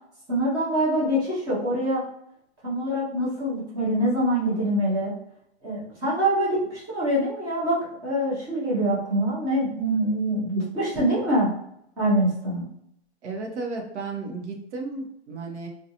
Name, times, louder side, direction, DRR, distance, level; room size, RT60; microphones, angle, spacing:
voice 1, 0.3-2.0 2.6-5.1 5.6-11.5 12.0-12.7, right 1 dB, 10° right, -7 dB, 0.5 m, -24 dB
voice 2, 13.2-15.7, right 3 dB, 75° right, 2 dB, 0.8 m, -33 dB
2.4 x 2.3 x 2.7 m, 0.73 s
hypercardioid pair, 155°, 35 cm